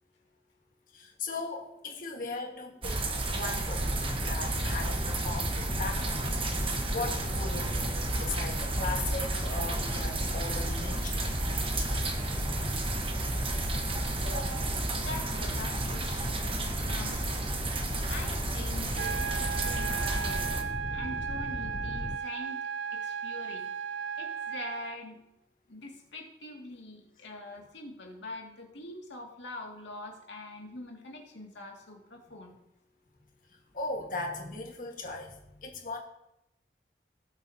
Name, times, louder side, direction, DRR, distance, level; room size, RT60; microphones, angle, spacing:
voice 1, 0.9-3.0 3.3-3.8 4.2-11.3 14.2-14.8 33.5-36.0, left 2 dB, 50° left, 1 dB, 1.7 m, -38 dB
sound 1, 2.8-20.6, right 2 dB, 30° right, 1.2 m, -32 dB
sound 2, 3.8-22.2, left 1 dB, 20° left, 0.4 m, -37 dB
voice 2, 14.9-17.4 18.1-20.4 20.9-22.6 22.9-23.7 24.2-25.2 25.7-32.6, left 2 dB, 85° left, 0 dB, 2.3 m, -44 dB
sound 3, 19.0-25.0, right 7 dB, 85° right, 0.4 m, -35 dB
18.0 x 7.7 x 2.8 m, 0.86 s
head